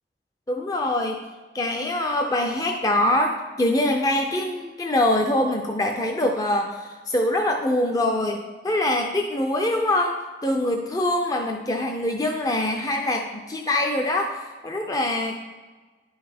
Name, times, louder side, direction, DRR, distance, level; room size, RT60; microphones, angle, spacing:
voice 1, 0.5-1.2 1.5-15.4, left 1 dB, 20° left, 2 dB, 0.5 m, -24 dB
10.5 x 5.4 x 3.5 m, 1.3 s
head